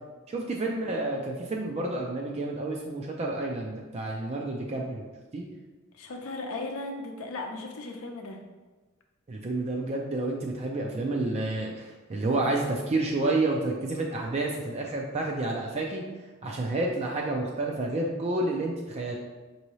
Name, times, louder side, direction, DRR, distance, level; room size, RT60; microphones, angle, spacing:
voice 1, 0.3-5.4 9.3-16.0 16.4-19.2, right 2 dB, 30° right, -1 dB, 0.4 m, -30 dB
voice 2, 5.9-8.4, left 2 dB, 75° left, 3 dB, 0.6 m, -37 dB
5.4 x 2.7 x 3.0 m, 1.3 s
head